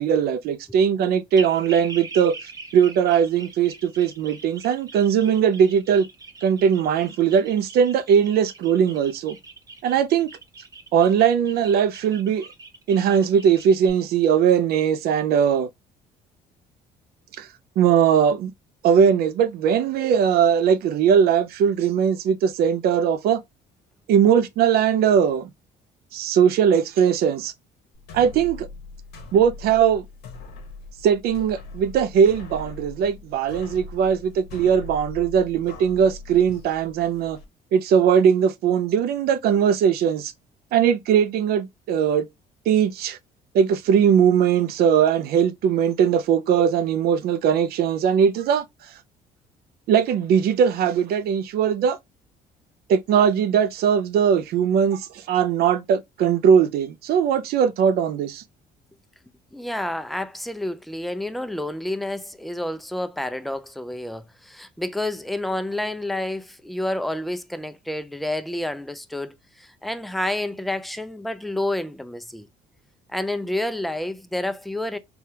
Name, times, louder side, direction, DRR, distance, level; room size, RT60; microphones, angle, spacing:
voice 1, 0.0-2.3 2.7-6.1 6.4-9.4 9.8-10.3 10.9-12.5 12.9-15.7 17.4-17.5 17.8-18.5 18.8-23.4 24.1-25.5 26.1-27.5 28.1-28.7 29.3-30.0 31.0-37.4 37.7-40.3 40.7-42.3 42.7-43.2 43.5-48.6 49.9-52.0 52.9-58.4, right 8 dB, 65° right, 0.4 m, -20 dB
sound 1, 1.4-13.9, right 3 dB, 20° right, 0.7 m, -42 dB
sound 2, 27.9-37.4, left 3 dB, 75° left, 0.9 m, -41 dB
voice 2, 59.5-72.5 73.1-75.0, left 1 dB, ahead, 0.3 m, -29 dB
3.3 x 2.3 x 2.7 m
cardioid pair, 110°, 17 cm